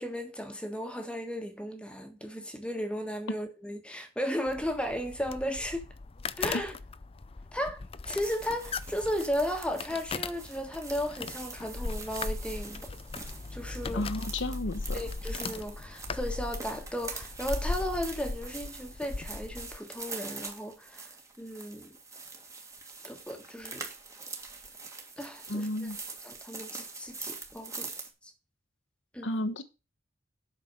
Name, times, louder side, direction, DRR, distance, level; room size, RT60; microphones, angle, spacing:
voice 1, 0.0-5.9 6.4-6.7 7.5-7.8 8.0-12.9 13.2-14.1 14.9-21.1 21.4-22.0 23.0-23.8 25.2-25.9 26.2-27.9 29.1-29.3, equal, 5° left, 1.5 m, -35 dB
sound 1, 4.5-19.8, left 3 dB, 30° left, 0.5 m, -38 dB
sound 2, 8.2-28.1, right 4 dB, 15° right, 1.7 m, -44 dB
voice 2, 13.9-15.0 25.5-26.0 29.2-29.6, left 1 dB, 70° left, 1.2 m, -32 dB
8.4 x 6.0 x 6.7 m
head